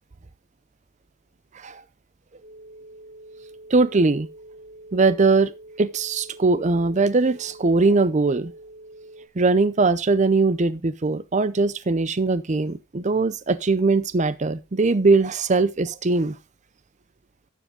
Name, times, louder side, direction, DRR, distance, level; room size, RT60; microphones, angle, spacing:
sound 1, 2.4-9.3, right 1 dB, 85° right, 2.9 m, -45 dB
voice 1, 3.7-4.3 4.9-5.5 5.8-8.5 9.4-16.4, right 3 dB, 35° right, 0.6 m, -21 dB
12.5 x 7.5 x 3.6 m
head